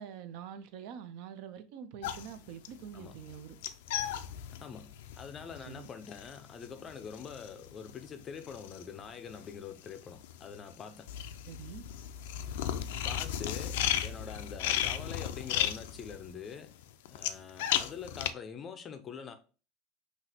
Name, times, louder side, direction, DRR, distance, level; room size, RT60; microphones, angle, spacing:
voice 1, 0.0-3.6 5.6-5.9 11.5-11.8 13.9-14.0, right 8 dB, 55° right, 0.5 m, -45 dB
sound 1, 2.0-9.5 9.8-18.3, left 10 dB, 80° left, 0.4 m, -35 dB
voice 2, 4.6-11.1 13.0-16.7 17.1-19.3, left 6 dB, 20° left, 0.5 m, -45 dB
5.8 x 2.8 x 2.8 m
supercardioid pair, 165°, 0 cm